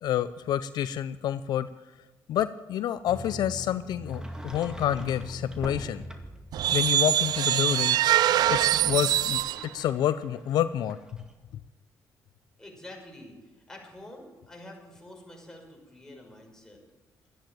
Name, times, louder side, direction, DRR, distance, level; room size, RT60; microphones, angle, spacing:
voice 1, 0.0-1.7 2.3-6.0 6.7-8.0 8.5-9.4 9.7-11.0, left 11 dB, 75° left, 14 dB, 0.4 m, -28 dB
sound 1, 3.1-8.8, left 1 dB, 55° left, 1.6 m, -42 dB
Sliding door, 4.0-6.5 8.2-11.3, equal, 10° right, 2.2 m, -45 dB
sound 2, 6.5-9.6, right 12 dB, 75° right, 0.4 m, -23 dB
voice 2, 12.6-13.4 13.7-16.8, left 1 dB, 10° left, 0 dB, 5.8 m, -47 dB
13.0 x 10.0 x 8.9 m, 1.2 s
supercardioid pair, 65°, 7 cm